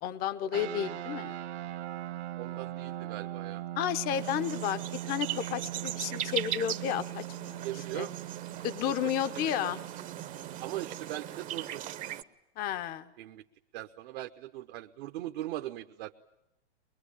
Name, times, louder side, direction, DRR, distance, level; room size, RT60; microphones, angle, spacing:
voice 1, 0.0-1.4 3.8-4.8 5.1-7.6 7.9-8.1 8.6-9.8 12.6-13.1, left 10 dB, 25° left, 12 dB, 0.8 m, -32 dB
sound 1, 0.5-11.2, right 14 dB, 70° right, 1.7 m, -40 dB
voice 2, 2.4-3.6 7.6-8.1 8.9-9.7 10.6-11.8 13.2-13.4 13.7-16.2, right 15 dB, 50° right, 4 dB, 1.0 m, -40 dB
sound 2, 4.1-12.2, right 11 dB, 25° right, 0.8 m, -39 dB
22.5 x 22.0 x 10.0 m, 0.92 s
hypercardioid pair, 130°, 34 cm